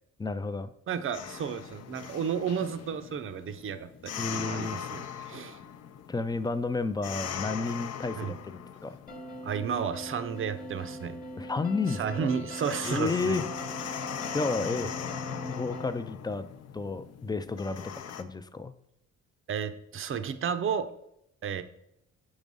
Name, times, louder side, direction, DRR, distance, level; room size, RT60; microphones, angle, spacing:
voice 1, 0.2-0.7 4.2-4.8 6.1-9.0 11.4-12.3 12.9-13.5 14.3-14.9 15.4-16.4 16.7-17.8 18.2-18.7, left 3 dB, 15° left, 12 dB, 0.4 m, -31 dB
voice 2, 0.9-5.6 8.2-8.4 9.4-11.2 11.9-13.4 19.5-20.9 21.4-21.6, right 7 dB, 45° right, 10 dB, 0.6 m, -32 dB
sound 1, 1.1-18.2, left 8 dB, 55° left, 0.6 m, -40 dB
sound 2, 9.1-15.9, right 1 dB, 30° left, 1.1 m, -42 dB
5.1 x 4.9 x 5.3 m, 0.80 s
cardioid pair, 90°, 30 cm